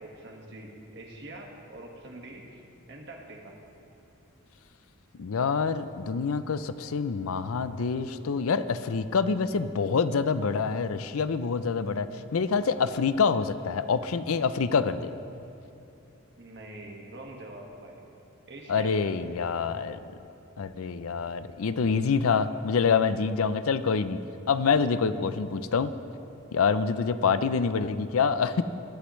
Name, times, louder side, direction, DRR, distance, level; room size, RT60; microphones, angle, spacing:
voice 1, 0.0-2.6 2.9-3.5 16.3-18.0 18.5-19.2, right 1 dB, 55° right, 0 dB, 1.7 m, -44 dB
voice 2, 5.2-15.1 18.7-20.0 20.6-24.2 24.5-25.9 26.5-28.6, left 5 dB, 85° left, 13 dB, 0.5 m, -26 dB
20.0 x 11.5 x 3.2 m, 2.8 s
head